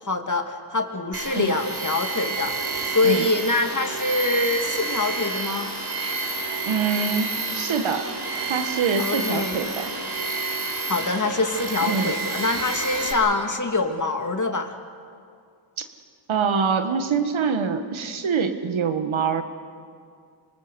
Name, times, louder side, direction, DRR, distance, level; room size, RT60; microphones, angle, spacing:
voice 1, 0.0-5.7 9.0-9.6 10.9-14.7, left 3 dB, 40° left, 5 dB, 2.3 m, -25 dB
Tools, 1.1-13.1, right 3 dB, 55° right, 4.2 m, -29 dB
voice 2, 6.6-8.1 8.5-9.9 11.8-12.1 16.3-19.4, right 5 dB, 75° right, 7 dB, 1.7 m, -24 dB
26.5 x 19.5 x 7.0 m, 2.3 s
cardioid pair, 65°, 48 cm